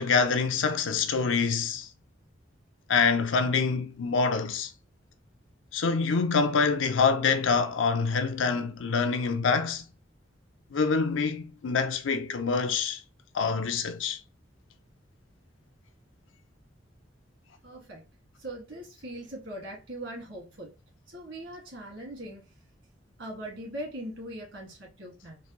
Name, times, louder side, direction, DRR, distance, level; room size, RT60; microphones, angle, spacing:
voice 1, 0.0-1.9 2.9-4.7 5.7-9.8 10.7-13.0 13.3-14.2, left 5 dB, 80° left, 0.6 m, -26 dB
voice 2, 17.6-18.0 18.4-20.7 21.1-22.4 23.2-25.4, right 1 dB, 70° right, 1.6 m, -40 dB
3.9 x 2.2 x 3.0 m
head